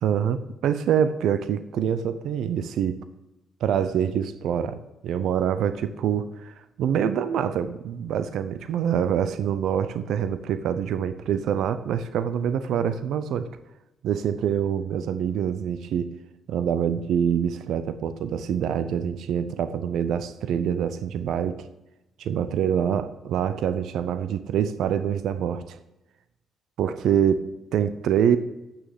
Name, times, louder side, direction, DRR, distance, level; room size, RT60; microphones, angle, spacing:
voice 1, 0.0-3.0 3.6-13.5 14.0-16.1 16.5-21.7 22.2-25.8 26.8-28.4, right 8 dB, 75° right, 12 dB, 0.6 m, -25 dB
8.9 x 6.4 x 7.9 m, 0.94 s
cardioid pair, 90°, 0 cm